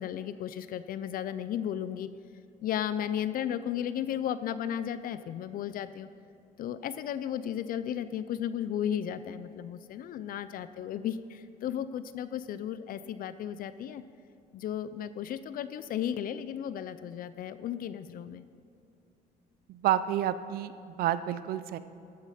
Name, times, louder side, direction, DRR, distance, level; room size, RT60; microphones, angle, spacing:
voice 1, 0.0-2.1 2.6-6.1 6.6-14.0 14.5-18.4, left 10 dB, 55° left, 13 dB, 0.4 m, -34 dB
voice 2, 19.7-20.7 21.0-21.8, right 11 dB, 60° right, 13 dB, 0.5 m, -29 dB
13.5 x 8.0 x 5.0 m, 2.6 s
cardioid pair, 115°, 17 cm